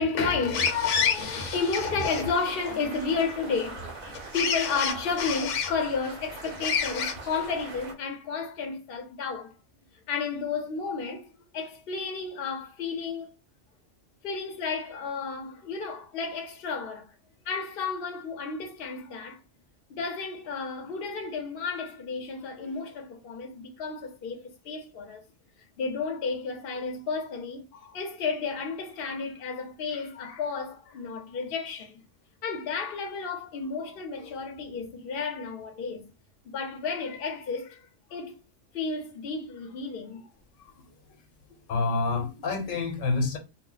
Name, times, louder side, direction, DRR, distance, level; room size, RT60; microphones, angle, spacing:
voice 1, 0.0-9.6 10.1-13.3 14.2-17.1 17.4-19.4 19.9-25.3 25.8-32.0 32.4-36.1 36.4-38.4 38.7-40.3 40.6-40.7, left 5 dB, 55° left, 0.8 m, -31 dB
sound 1, 0.5-7.9, right 3 dB, 45° right, 0.6 m, -42 dB
voice 2, 40.8-41.2 41.7-43.4, left 3 dB, 85° left, 1.2 m, -28 dB
2.3 x 2.0 x 3.9 m
omnidirectional pair, 1.3 m